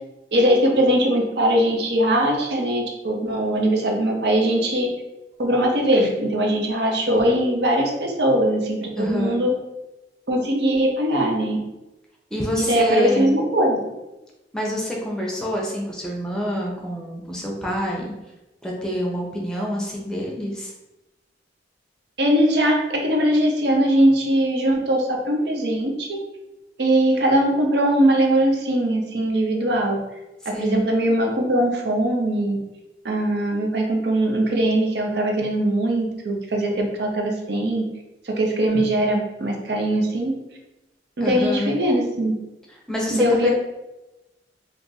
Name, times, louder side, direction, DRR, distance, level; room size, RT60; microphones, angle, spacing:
voice 1, 0.3-4.9 5.4-9.5 10.3-11.6 12.6-13.8 22.2-26.2 26.8-30.0 30.5-32.6 33.0-37.9 38.3-40.3 41.2-42.3 43.1-43.5, right 1 dB, 65° right, 1 dB, 0.6 m, -21 dB
voice 2, 9.0-9.4 12.3-13.3 14.5-18.1 18.6-20.7 30.5-30.8 41.2-41.7 42.9-43.5, equal, 5° left, -2 dB, 0.6 m, -26 dB
2.5 x 2.5 x 3.9 m, 0.99 s
head